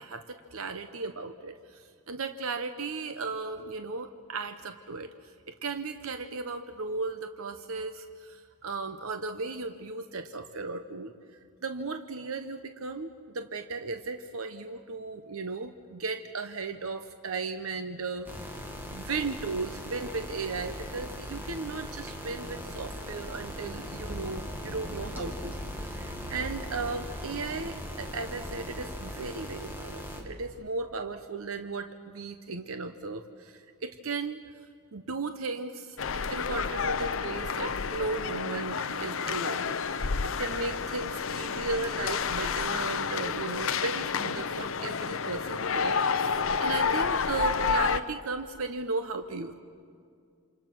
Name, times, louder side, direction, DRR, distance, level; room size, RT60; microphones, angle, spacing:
voice 1, 0.0-5.1 5.5-11.1 11.6-18.3 18.9-25.5 25.8-34.4 34.9-49.5, right 3 dB, 70° right, 8 dB, 0.9 m, -36 dB
sound 1, 18.2-30.2, equal, 10° right, 2.2 m, -39 dB
sound 2, 36.0-48.0, left 5 dB, 65° left, 0.7 m, -30 dB
28.0 x 27.0 x 6.1 m, 2.2 s
head